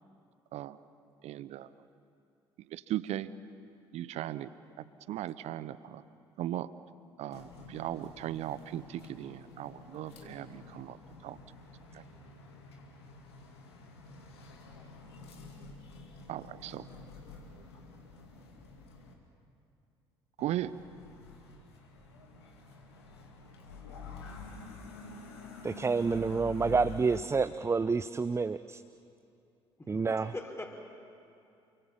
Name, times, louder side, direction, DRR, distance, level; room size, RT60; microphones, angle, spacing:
voice 1, 1.2-1.7 2.7-3.3 3.9-4.5 5.1-6.0 6.4-6.7 7.2-11.0 11.2-11.4 16.3-16.8 20.4-20.7, right 13 dB, 55° right, 16 dB, 0.8 m, -37 dB
sound 1, 7.3-19.1 20.4-27.2, left 3 dB, 80° left, 2.4 m, -49 dB
voice 2, 25.6-28.8 29.9-30.3, right 4 dB, 20° right, 12 dB, 0.6 m, -29 dB
voice 3, 29.8-30.8, left 2 dB, 20° left, 2 dB, 4.4 m, -42 dB
28.5 x 23.5 x 7.2 m, 2.6 s
figure-of-eight pair, 50°, 14 cm